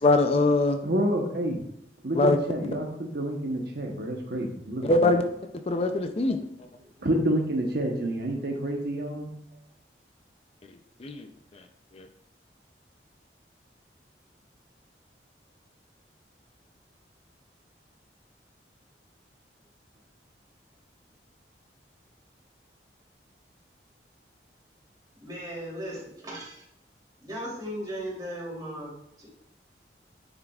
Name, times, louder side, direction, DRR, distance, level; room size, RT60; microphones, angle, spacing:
voice 1, 0.0-0.8 2.1-2.4 4.8-5.2 5.7-6.4 11.0-11.3 11.9-12.1, left 2 dB, 35° left, 7 dB, 0.5 m, -22 dB
voice 2, 0.8-1.6 2.0-5.2 7.0-9.3, right 1 dB, 60° right, 1 dB, 1.0 m, -28 dB
voice 3, 25.2-26.6 27.2-28.9 29.2-29.3, equal, 25° right, -5 dB, 3.0 m, -36 dB
9.4 x 7.1 x 2.4 m, 0.77 s
head